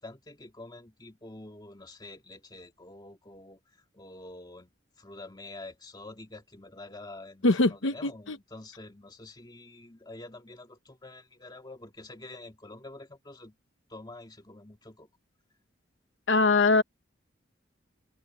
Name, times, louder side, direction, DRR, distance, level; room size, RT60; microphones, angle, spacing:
voice 1, 0.0-3.6 3.9-4.7 5.0-13.5 13.9-15.1, left 2 dB, 20° left, 2.5 m, -47 dB
voice 2, 7.4-8.4 16.3-16.8, left 3 dB, 85° left, 0.9 m, -23 dB
head